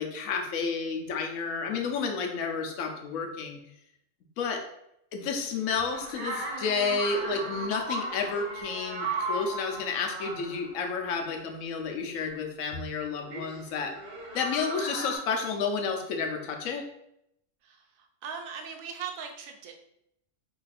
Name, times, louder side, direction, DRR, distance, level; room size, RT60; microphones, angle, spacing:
voice 1, 0.0-3.6 4.4-4.6 5.1-13.9 14.3-16.8, left 5 dB, 80° left, 3 dB, 1.0 m, -31 dB
sound 1, 5.9-10.9 13.3-15.2, right 2 dB, 50° right, 0.8 m, -36 dB
voice 2, 18.2-19.7, right 6 dB, 90° right, 4 dB, 1.0 m, -38 dB
3.0 x 2.5 x 4.0 m, 0.76 s
omnidirectional pair, 1.4 m